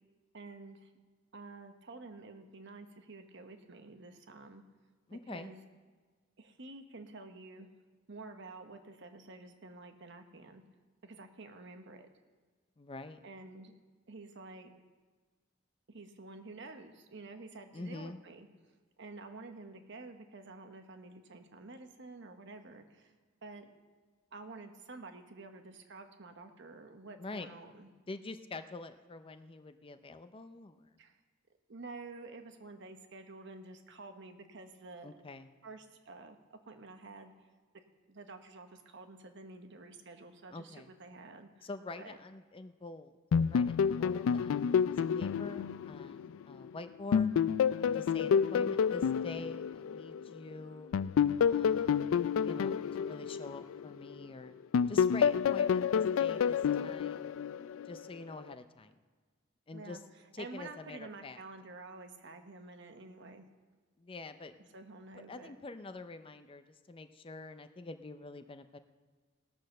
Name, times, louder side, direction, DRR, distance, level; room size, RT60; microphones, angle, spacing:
voice 1, 0.3-0.9 1.3-4.6 5.1-5.6 6.4-7.7 8.1-10.6 11.0-12.1 13.2-13.7 14.1-14.7 15.9-18.5 19.0-23.1 23.4-23.7 24.3-27.9 31.0-31.2 31.7-35.1 35.6-37.3 38.1-41.7 42.0-42.2 59.7-60.0 60.4-63.4 64.7-65.5, right 3 dB, 60° right, 6 dB, 1.1 m, -49 dB
voice 2, 5.1-5.5 12.8-13.2 17.7-18.2 27.2-27.5 28.1-30.9 35.0-35.5 40.5-40.9 41.6-43.2 43.5-47.3 47.9-50.9 51.5-52.1 52.4-54.5 54.9-57.3 57.9-58.9 59.7-60.0 60.3-61.4 64.0-64.7 65.3-68.8, left 2 dB, 25° left, 10 dB, 0.5 m, -46 dB
sound 1, 43.3-46.7 47.1-50.4 50.9-54.3 54.7-58.0, left 7 dB, 85° left, 0.3 m, -29 dB
18.0 x 6.4 x 6.5 m, 1.4 s
head